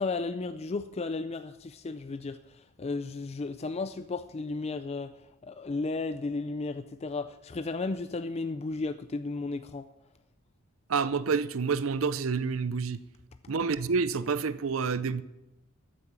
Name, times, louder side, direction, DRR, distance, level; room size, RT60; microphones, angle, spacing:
voice 1, 0.0-5.1 5.4-9.9, left 3 dB, 30° left, 0.4 m, -34 dB
voice 2, 10.9-13.0 13.5-15.2, right 5 dB, 75° right, 0.6 m, -28 dB
13.5 x 8.5 x 7.0 m
head